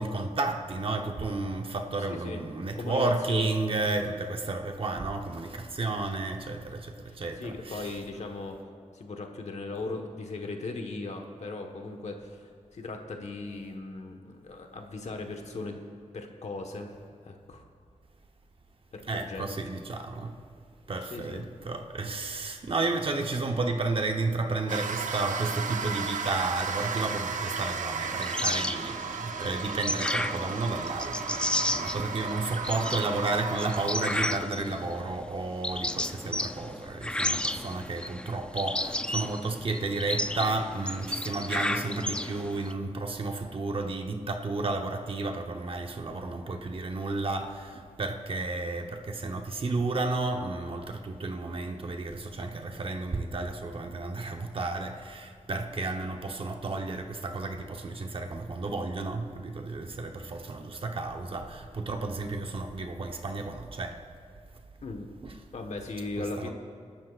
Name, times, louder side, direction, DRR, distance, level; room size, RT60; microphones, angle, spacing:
voice 1, 0.0-7.9 19.1-20.3 20.9-64.0 65.2-65.3 66.4-66.5, right 3 dB, 45° right, 4 dB, 1.0 m, -32 dB
voice 2, 2.1-2.4 2.7-3.5 7.0-8.6 8.9-15.8 16.1-17.0 17.2-17.6 18.9-19.4 21.1-21.5 64.8-65.1 65.5-66.5, left 3 dB, 60° left, 3 dB, 1.3 m, -38 dB
sound 1, 24.7-34.3, right 5 dB, 75° right, 0.7 m, -34 dB
sound 2, 28.0-42.7, left 1 dB, 10° left, 0.3 m, -33 dB
29.0 x 12.0 x 2.5 m, 2.2 s
wide cardioid pair, 130°, 13 cm